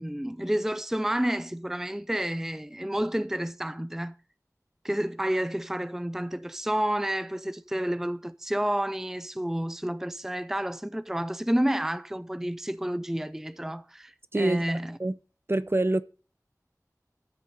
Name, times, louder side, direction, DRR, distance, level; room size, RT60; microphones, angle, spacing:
voice 1, 0.0-4.2 4.8-15.0, right 1 dB, 5° right, 0.5 m, -30 dB
voice 2, 14.3-14.6 15.0-15.1 15.5-16.0, right 2 dB, 40° right, 0.7 m, -25 dB
13.0 x 6.6 x 5.3 m
wide cardioid pair, 45°, 6 cm